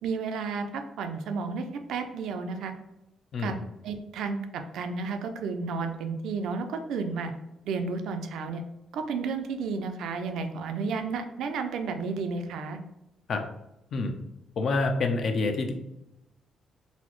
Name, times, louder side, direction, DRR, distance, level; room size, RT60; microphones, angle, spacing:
voice 1, 0.0-2.7 3.4-3.5 3.8-7.3 7.7-8.6 8.9-12.8, right 4 dB, 80° right, 7 dB, 0.4 m, -32 dB
voice 2, 14.6-15.7, left 3 dB, 55° left, 5 dB, 0.5 m, -27 dB
4.0 x 2.0 x 3.0 m, 0.86 s
cardioid pair, 90°, 0 cm